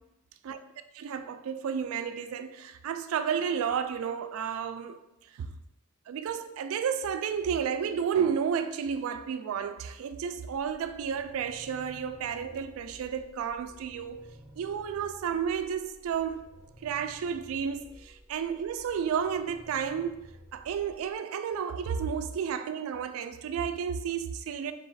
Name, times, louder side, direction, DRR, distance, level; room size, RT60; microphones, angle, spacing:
voice 1, 0.9-5.0 5.3-5.5 6.1-16.5 16.8-20.2 20.5-24.7, right 7 dB, 70° right, 0.3 m, -32 dB
sound 1, 10.5-21.2, equal, 10° right, 0.5 m, -53 dB
3.4 x 3.0 x 4.0 m
head